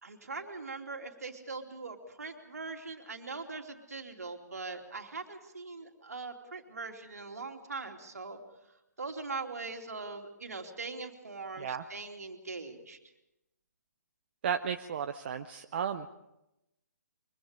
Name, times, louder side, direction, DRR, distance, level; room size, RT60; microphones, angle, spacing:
voice 1, 0.0-8.4 9.0-13.0, right 3 dB, 65° right, 4 dB, 2.9 m, -41 dB
voice 2, 14.4-16.1, right 7 dB, 40° right, 8 dB, 0.7 m, -34 dB
25.0 x 23.5 x 5.0 m, 0.90 s
figure-of-eight pair, 135°, 9 cm